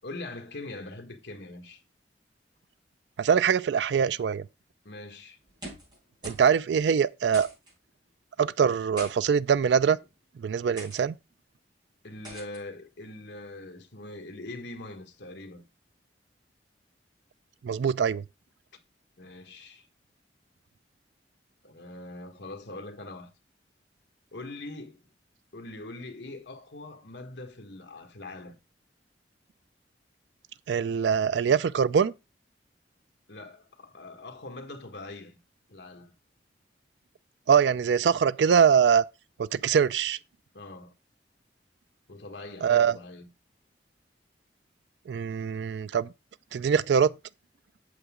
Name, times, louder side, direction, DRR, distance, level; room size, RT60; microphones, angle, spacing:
voice 1, 0.0-1.8 4.8-5.4 12.0-15.6 19.2-19.9 21.6-23.3 24.3-25.0 25.5-28.6 33.3-35.4 35.7-36.1 40.5-40.9 42.1-43.3, left 2 dB, 75° left, 1.5 m, -42 dB
voice 2, 3.2-4.4 6.2-7.5 8.4-10.0 10.4-11.2 17.6-18.2 30.7-32.1 37.5-39.0 39.4-40.2 42.6-43.0 45.1-46.1 46.5-47.1, right 7 dB, 75° right, 0.4 m, -23 dB
sound 1, 5.4-6.0 6.2-6.5 6.8-6.9 7.3-7.7 8.7-9.1 9.9-10.1 10.8-11.0 12.2-12.6, right 1 dB, 25° right, 5.6 m, -43 dB
8.2 x 7.1 x 3.6 m
head